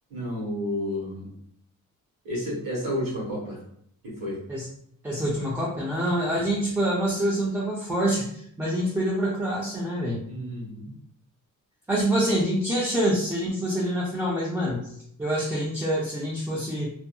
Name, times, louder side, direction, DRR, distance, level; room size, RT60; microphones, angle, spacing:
voice 1, 0.1-1.3 2.2-3.6 4.0-4.4 10.2-10.9, equal, 90° right, -4 dB, 1.4 m, -31 dB
voice 2, 5.0-10.2 11.9-14.9 15.2-16.9, right 1 dB, 5° right, -5 dB, 0.4 m, -26 dB
2.7 x 2.5 x 2.3 m, 0.67 s
wide cardioid pair, 140°, 33 cm